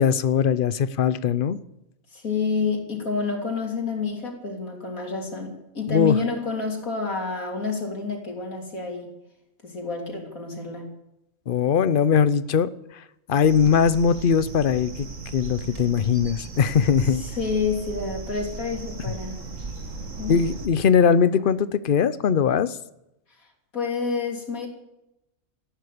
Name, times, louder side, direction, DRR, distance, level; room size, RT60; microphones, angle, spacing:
voice 1, 0.0-1.6 5.9-6.2 11.5-12.7 13.3-15.1 15.3-17.2 20.3-22.8, left 7 dB, 50° left, 15 dB, 0.7 m, -20 dB
voice 2, 2.1-9.1 9.6-10.9 17.2-19.4 20.2-20.5 23.7-24.7, left 4 dB, 85° left, 1 dB, 3.6 m, -28 dB
sound 1, 13.4-20.7, right 3 dB, 65° right, 2.2 m, -37 dB
14.0 x 11.5 x 8.5 m, 0.88 s
omnidirectional pair, 1.4 m